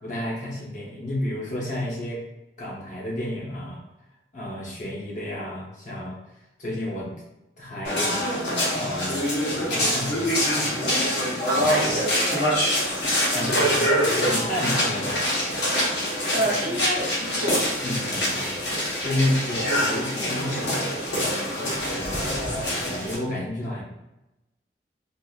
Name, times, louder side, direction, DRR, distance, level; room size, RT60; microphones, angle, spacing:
voice 1, 0.0-2.2 2.6-3.8 4.3-6.2 6.6-7.1 7.6-8.3 8.7-10.9 11.4-11.7 13.3-15.2 17.8-18.6 19.0-23.8, left 1 dB, 45° left, -4 dB, 0.9 m, -31 dB
sound 1, 7.8-23.1, equal, 70° left, 1.1 m, -25 dB
voice 2, 11.5-12.5 16.3-17.6, right 1 dB, 55° right, -3 dB, 0.7 m, -28 dB
3.6 x 2.6 x 2.4 m, 0.95 s
head